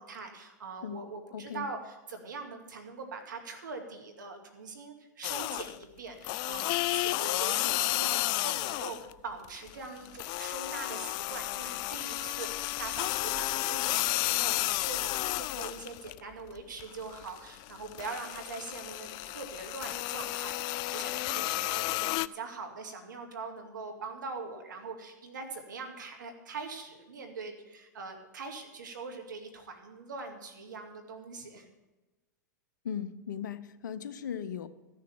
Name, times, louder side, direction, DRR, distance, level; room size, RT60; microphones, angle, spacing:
voice 1, 0.0-31.7, right 4 dB, 80° right, 4 dB, 2.2 m, -42 dB
voice 2, 1.3-1.7 32.8-34.7, left 8 dB, 80° left, 13 dB, 0.8 m, -37 dB
sound 1, 5.2-5.8 6.2-9.1 9.4-16.2 16.6-22.3, left 20 dB, 45° left, 0.4 m, -32 dB
14.5 x 6.6 x 7.1 m, 1.1 s
hypercardioid pair, 105°, 10 cm